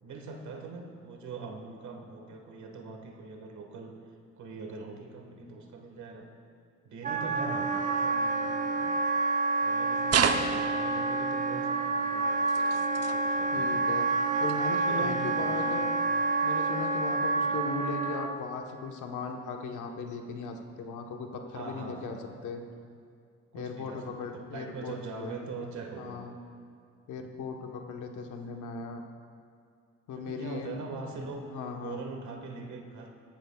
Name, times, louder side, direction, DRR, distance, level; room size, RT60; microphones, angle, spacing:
voice 1, 0.0-3.9 4.4-6.3 6.8-8.9 9.6-13.8 14.9-15.9 17.4-17.7 21.5-22.4 23.5-26.2 30.1-31.4 31.8-33.1, right 4 dB, 70° right, 2 dB, 1.7 m, -42 dB
Wind instrument woodwind instrument, 7.0-18.3, right 3 dB, 25° right, 0.8 m, -28 dB
sound 1, 10.1-11.0 12.4-13.2 14.5-14.6 15.4-15.5, right 7 dB, 55° right, 0.9 m, -29 dB
voice 2, 13.5-14.1 14.4-15.9 16.4-22.6 23.5-25.3 26.0-26.3 27.1-29.0 30.1-30.7 31.5-32.0, left 5 dB, 80° left, 3 dB, 1.2 m, -38 dB
17.5 x 14.0 x 2.4 m, 2.3 s
cardioid pair, 90°, 30 cm